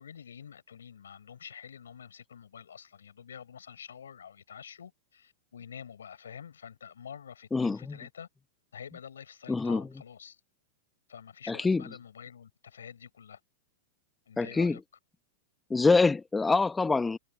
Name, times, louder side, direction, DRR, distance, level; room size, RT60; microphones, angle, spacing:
voice 1, 0.0-8.3 8.7-10.4 11.1-13.4 14.3-14.8, left 8 dB, 80° left, 6.4 m, -47 dB
voice 2, 9.5-9.8 11.5-11.8 14.4-14.8 15.7-17.2, left 3 dB, 10° left, 1.1 m, -25 dB
hypercardioid pair, 105°, 0 cm